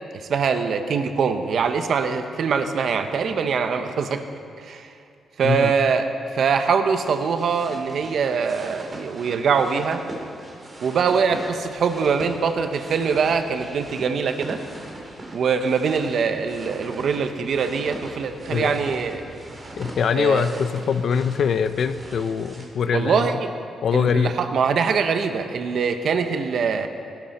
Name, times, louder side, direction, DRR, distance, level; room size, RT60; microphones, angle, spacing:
voice 1, 0.1-4.2 4.6-4.9 5.4-6.1 6.3-10.0 10.8-14.6 15.3-19.2 20.1-20.5 22.9-23.5 23.9-26.9, right 6 dB, 60° right, 8 dB, 0.9 m, -23 dB
sound 1, 7.0-22.6, right 1 dB, 30° right, 2.6 m, -40 dB
voice 2, 19.8-23.2 23.8-24.3, left 6 dB, 60° left, 12 dB, 0.6 m, -23 dB
17.5 x 12.0 x 4.3 m, 2.4 s
cardioid pair, 120°, 0 cm